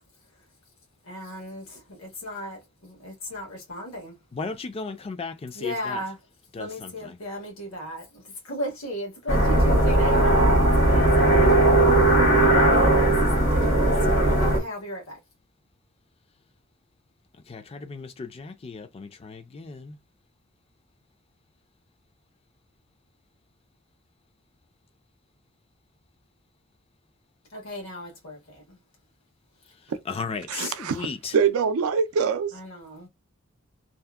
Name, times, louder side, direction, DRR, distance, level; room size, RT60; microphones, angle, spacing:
voice 1, 1.0-4.2 5.5-6.2 6.6-10.6 10.9-11.5 12.0-12.2 12.8-15.2 27.5-28.8 32.5-33.1, equal, 85° left, 1.2 m, -36 dB
voice 2, 4.3-6.0 6.5-7.2 17.5-19.9 30.1-31.3, left 4 dB, 30° left, 0.3 m, -35 dB
sound 1, 9.3-14.6, right 1 dB, 65° left, 1.0 m, -18 dB
voice 3, 30.5-32.5, right 6 dB, 90° right, 0.4 m, -24 dB
2.7 x 2.0 x 2.3 m
head